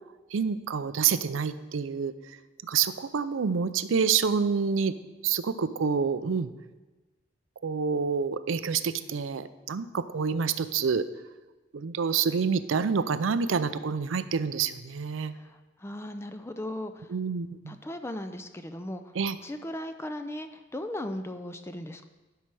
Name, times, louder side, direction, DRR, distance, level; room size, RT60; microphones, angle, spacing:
voice 1, 0.3-2.1 2.6-4.9 5.2-6.5 7.6-11.0 11.7-15.3 17.1-17.8 19.1-19.4, right 6 dB, 85° right, 13 dB, 0.5 m, -27 dB
voice 2, 15.8-17.1 17.7-19.0 19.4-22.1, left 1 dB, 15° left, 8 dB, 0.4 m, -37 dB
12.0 x 5.7 x 4.8 m, 1.2 s
head